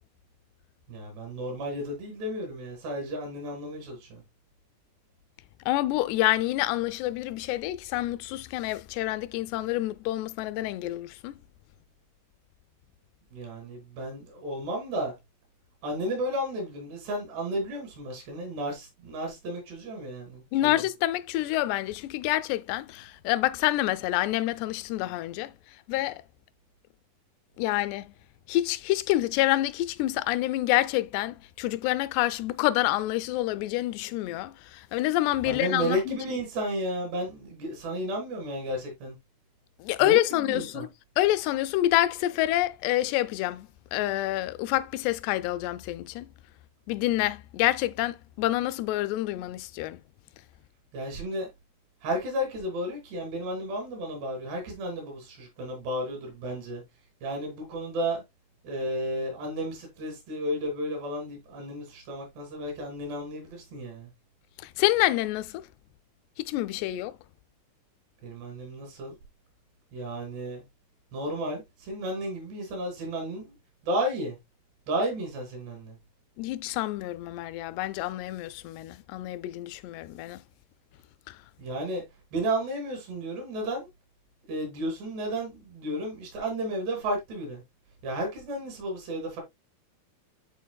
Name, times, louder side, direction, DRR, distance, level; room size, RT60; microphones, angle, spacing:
voice 1, 0.9-4.2 13.3-15.1 15.8-20.8 35.4-39.1 40.0-40.9 50.9-51.5 52.0-56.8 57.2-58.2 58.6-64.1 68.2-69.2 69.9-70.6 71.1-73.5 73.8-74.4 74.9-76.0 81.6-82.0 82.3-83.9 84.5-87.6 88.0-89.4, right 1 dB, 85° right, 5.0 m, -33 dB
voice 2, 5.7-11.4 20.5-25.5 25.9-26.2 27.6-28.1 28.5-36.2 39.8-40.9 41.2-46.3 46.9-50.0 64.6-65.6 66.4-67.2 76.4-80.4 81.3-81.4, left 16 dB, 90° left, 2.6 m, -27 dB
11.5 x 4.1 x 2.3 m
omnidirectional pair, 4.7 m